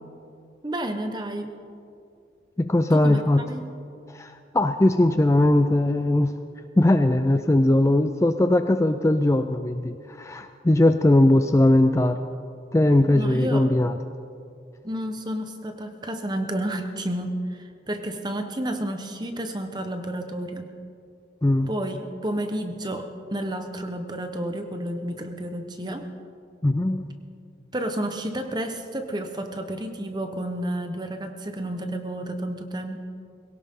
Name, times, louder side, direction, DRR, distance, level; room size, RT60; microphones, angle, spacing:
voice 1, 0.6-1.5 2.9-3.2 3.5-3.7 13.1-13.7 14.8-20.7 21.7-26.0 27.7-33.0, right 1 dB, 25° right, 6 dB, 1.1 m, -31 dB
voice 2, 2.6-3.4 4.1-6.3 6.8-12.2 12.7-14.0 21.4-21.7 26.6-27.0, left 1 dB, 15° left, 8 dB, 0.4 m, -20 dB
22.0 x 17.0 x 3.8 m, 2.5 s
head